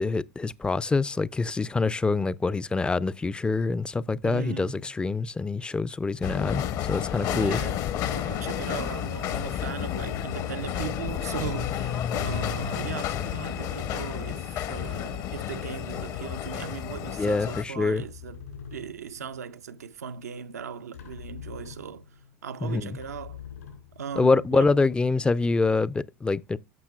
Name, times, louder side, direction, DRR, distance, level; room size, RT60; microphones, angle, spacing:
voice 1, 0.0-7.6 17.2-18.0 22.6-23.0 24.2-26.6, left 3 dB, 10° left, 0.3 m, -25 dB
voice 2, 4.2-4.8 7.1-18.4 18.7-23.4 24.0-24.8, right 7 dB, 85° right, 0.5 m, -38 dB
sound 1, 6.2-17.6, left 10 dB, 45° left, 0.7 m, -31 dB
sound 2, 9.2-17.1 17.4-17.5 18.0-19.6 20.6-20.7 20.9-22.3 23.0-24.3, left 7 dB, 85° left, 3.8 m, -43 dB
Car / Engine starting, 9.5-9.6 9.9-15.1, left 8 dB, 60° left, 1.1 m, -39 dB
13.5 x 5.7 x 2.3 m
hypercardioid pair, 90°, 8 cm